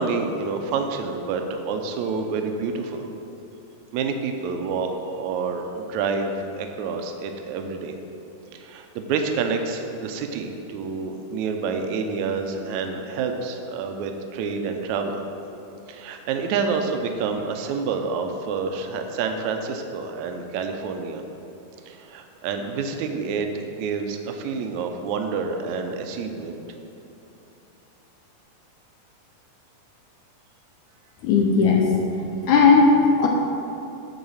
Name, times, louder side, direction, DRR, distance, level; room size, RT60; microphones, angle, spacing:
voice 1, 0.0-3.0 3.9-8.0 8.5-15.2 15.9-21.2 21.9-26.6, right 5 dB, 75° right, 5 dB, 1.8 m, -28 dB
voice 2, 31.2-31.8 32.5-33.3, left 4 dB, 80° left, 0 dB, 1.9 m, -16 dB
10.5 x 4.0 x 7.0 m, 2.9 s
omnidirectional pair, 4.0 m